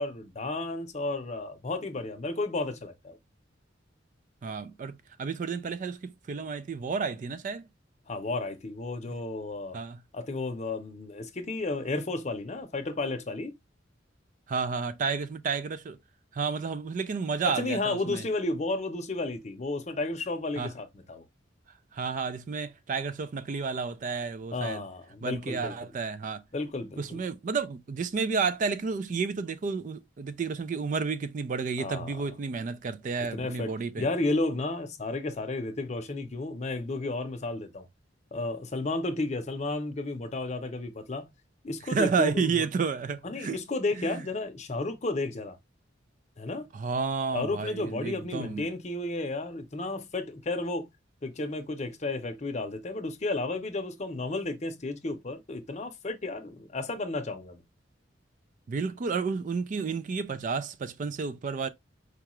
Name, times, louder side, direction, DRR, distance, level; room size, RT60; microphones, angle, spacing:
voice 1, 0.0-3.2 8.1-9.8 10.1-13.5 17.4-21.2 24.5-25.9 26.5-27.2 31.8-32.2 33.3-33.7 34.0-37.9 38.3-41.3 41.6-42.6 43.2-45.6 46.4-46.7 47.3-50.9 51.2-57.6, left 2 dB, 35° left, 0.6 m, -32 dB
voice 2, 4.4-7.6 9.7-10.0 14.5-16.0 16.3-18.2 20.6-20.7 21.9-24.8 25.2-26.4 27.0-34.1 41.9-43.6 44.0-44.2 46.7-48.7 58.7-61.7, right 5 dB, 40° right, 0.3 m, -31 dB
4.7 x 2.4 x 2.9 m
head